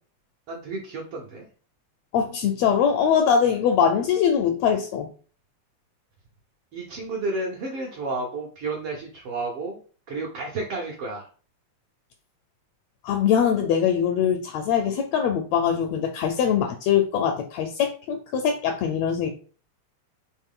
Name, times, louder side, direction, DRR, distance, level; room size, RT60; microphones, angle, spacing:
voice 1, 0.5-1.5 6.7-9.8 10.1-11.3, right 3 dB, 65° right, 1.5 m, -31 dB
voice 2, 2.1-5.1 13.0-19.3, left 8 dB, 80° left, 1.6 m, -22 dB
4.5 x 3.1 x 3.6 m
omnidirectional pair, 3.3 m